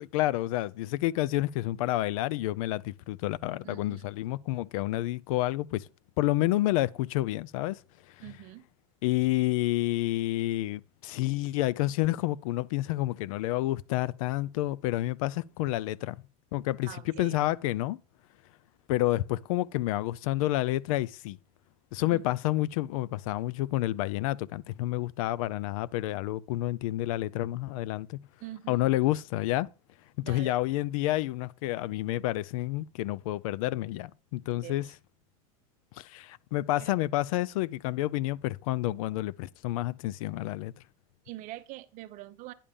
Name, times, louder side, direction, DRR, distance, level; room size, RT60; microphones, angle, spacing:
voice 1, 0.0-5.9 6.2-7.8 9.0-16.2 16.5-18.0 18.9-21.4 21.9-28.2 28.7-29.7 30.2-34.9 36.0-40.7, left 16 dB, 70° left, 0.4 m, -29 dB
voice 2, 3.6-4.1 8.2-8.6 16.8-17.3 22.1-22.2 28.4-28.8 30.3-30.6 34.6-34.8 36.8-37.0 41.2-42.5, right 16 dB, 45° right, 0.7 m, -44 dB
10.0 x 3.6 x 6.8 m
supercardioid pair, 135°, 18 cm